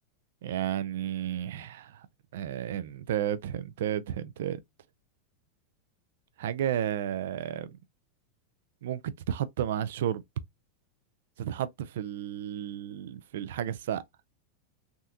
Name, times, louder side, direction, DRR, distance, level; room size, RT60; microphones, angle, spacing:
voice 1, 0.4-2.1 2.3-4.6 6.4-7.8 8.8-10.2 11.4-14.0, right 10 dB, 80° right, 0.4 m, -32 dB
3.5 x 2.7 x 2.4 m
supercardioid pair, 165°, 0 cm